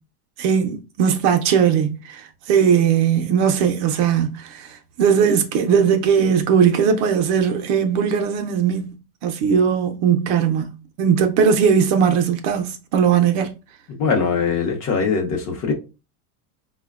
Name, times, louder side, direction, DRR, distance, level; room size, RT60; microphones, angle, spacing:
voice 1, 0.4-2.2 2.5-4.7 5.0-8.9 9.2-10.7 11.0-13.5, right 7 dB, 50° right, 0.5 m, -18 dB
voice 2, 14.0-15.7, left 5 dB, 35° left, 0.7 m, -21 dB
4.3 x 2.2 x 2.3 m
supercardioid pair, 135°, 46 cm